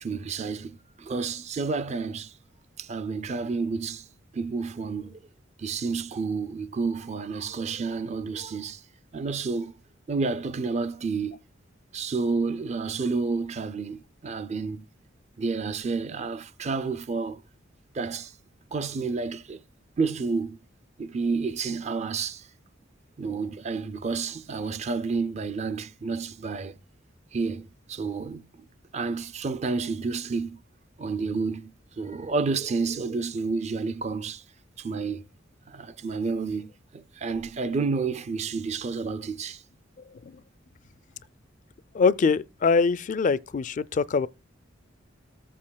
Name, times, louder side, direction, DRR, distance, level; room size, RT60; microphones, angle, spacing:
voice 1, 0.0-2.3 2.8-4.0 4.3-5.2 5.6-8.8 9.1-9.7 10.1-11.4 11.9-14.9 15.4-17.4 17.9-18.3 18.7-19.6 20.0-20.6 21.0-22.4 23.2-26.7 27.3-28.6 28.9-30.6 31.0-34.4 34.8-35.2 35.7-39.6, right 4 dB, 35° right, 0.4 m, -30 dB
voice 2, 41.9-44.3, left 5 dB, 40° left, 0.4 m, -23 dB
14.0 x 7.5 x 2.2 m
head